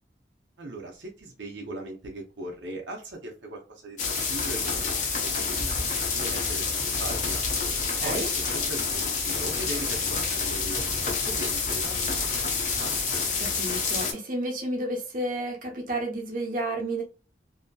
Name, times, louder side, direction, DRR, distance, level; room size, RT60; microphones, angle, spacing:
voice 1, 0.6-6.7 7.0-7.4 8.0-12.9, right 2 dB, 80° right, 0.6 m, -39 dB
sound 1, 4.0-14.1, left 4 dB, 40° left, 0.6 m, -28 dB
voice 2, 8.0-8.3 13.4-17.0, right 1 dB, 45° right, 0.8 m, -31 dB
2.7 x 2.6 x 2.2 m
head